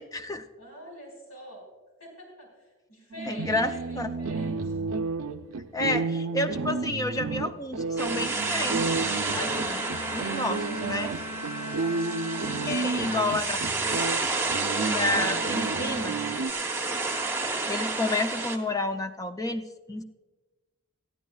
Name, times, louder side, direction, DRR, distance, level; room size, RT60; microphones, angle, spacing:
voice 1, 0.0-0.5 3.3-4.1 5.7-8.9 9.3-9.8 10.1-11.1 12.6-13.6 14.9-16.2 17.4-20.0, left 2 dB, 15° left, 8 dB, 0.5 m, -30 dB
voice 2, 0.6-1.7 2.0-4.7 11.5-12.1 12.8-14.0, equal, 90° left, 0 dB, 5.1 m, -45 dB
sound 1, 3.1-16.5, right 4 dB, 75° right, 0.6 m, -32 dB
sound 2, 8.0-18.6, right 3 dB, 10° right, 0.9 m, -30 dB
Bowed string instrument, 8.7-14.3, left 1 dB, 35° left, 2.0 m, -40 dB
20.5 x 13.0 x 2.4 m, 1.2 s
head